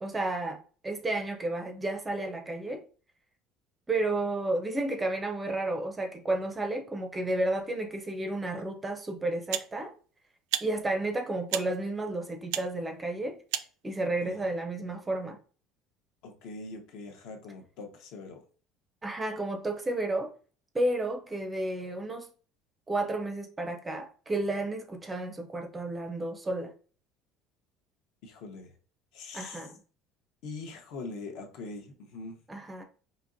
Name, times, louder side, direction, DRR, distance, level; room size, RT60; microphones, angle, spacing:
voice 1, 0.0-2.8 3.9-9.9 10.6-13.4 13.8-15.4 19.0-20.3 20.7-22.3 22.9-26.7 29.3-29.7 32.5-32.8, right 2 dB, 10° right, 0.5 m, -32 dB
sound 1, 8.6-8.7 9.5-9.7 10.5-10.7 11.5-11.7 12.5-12.7 13.5-13.7, right 13 dB, 90° right, 0.3 m, -32 dB
voice 2, 14.0-14.4 16.2-18.4 28.2-28.7 29.1-29.7 30.4-32.4, left 3 dB, 60° left, 0.8 m, -42 dB
5.0 x 2.8 x 2.6 m
cardioid pair, 170°, 0 cm